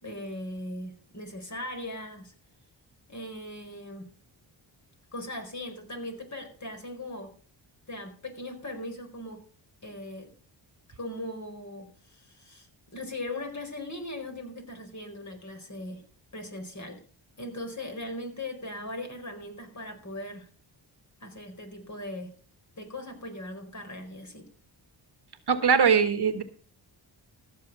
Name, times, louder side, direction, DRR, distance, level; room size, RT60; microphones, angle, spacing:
voice 1, 0.0-2.3 3.1-4.1 5.1-7.3 7.9-9.4 9.8-10.3 11.0-16.0 16.3-17.0 17.4-20.5 21.2-22.3 22.8-24.5, left 1 dB, 35° left, 4 dB, 4.5 m, -39 dB
voice 2, 25.5-26.4, right 6 dB, 55° right, 9 dB, 1.5 m, -21 dB
15.0 x 7.0 x 5.5 m, 0.43 s
cardioid pair, 65°, 47 cm